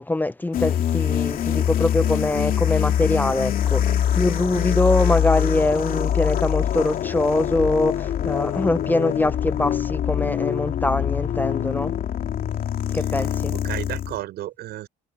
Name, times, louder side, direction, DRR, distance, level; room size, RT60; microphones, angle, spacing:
voice 1, 0.0-11.9 12.9-13.5, left 2 dB, 10° left, 0.8 m, -23 dB
sound 1, 0.5-14.2, left 10 dB, 55° left, 2.7 m, -24 dB
voice 2, 12.9-14.9, right 15 dB, 75° right, 5.8 m, -34 dB
cardioid pair, 110°, 17 cm